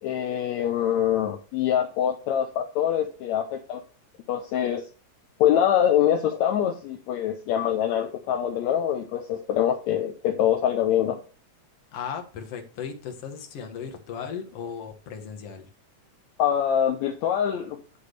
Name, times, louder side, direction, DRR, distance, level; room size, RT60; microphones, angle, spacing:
voice 1, 0.0-3.8 4.3-4.9 5.4-11.2 16.4-17.8, left 10 dB, 75° left, 4 dB, 2.1 m, -24 dB
voice 2, 11.9-15.7, left 7 dB, 60° left, 4 dB, 2.3 m, -36 dB
9.9 x 3.6 x 6.6 m, 0.37 s
omnidirectional pair, 3.3 m